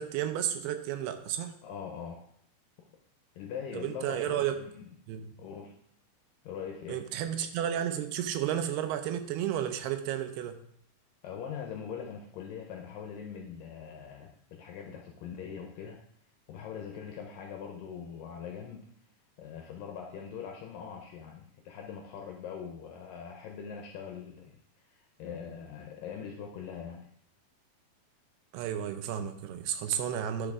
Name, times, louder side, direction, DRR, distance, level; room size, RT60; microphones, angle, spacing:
voice 1, 0.0-1.6 3.7-4.6 5.1-5.4 6.9-10.6 28.5-30.5, right 10 dB, 80° right, 8 dB, 2.6 m, -32 dB
voice 2, 1.6-2.3 3.4-4.9 5.4-5.8 6.4-7.0 11.2-16.0 16.5-18.9 19.4-27.1, left 7 dB, 80° left, 2 dB, 2.0 m, -42 dB
11.5 x 4.9 x 3.6 m, 0.68 s
omnidirectional pair, 4.7 m